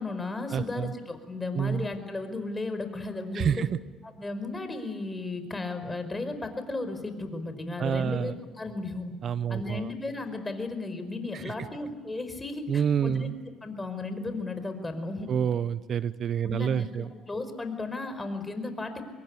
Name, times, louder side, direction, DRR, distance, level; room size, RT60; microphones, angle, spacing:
voice 1, 0.0-3.5 4.0-9.1 9.5-13.3 13.6-15.3 16.4-19.0, left 3 dB, 20° left, 8 dB, 4.9 m, -35 dB
voice 2, 0.5-0.9 1.5-1.9 3.3-3.7 7.8-8.3 9.2-9.9 11.3-11.5 12.7-13.3 15.3-17.1, right 8 dB, 50° right, 16 dB, 0.7 m, -28 dB
24.5 x 22.0 x 9.8 m, 1.4 s
supercardioid pair, 70°, 0 cm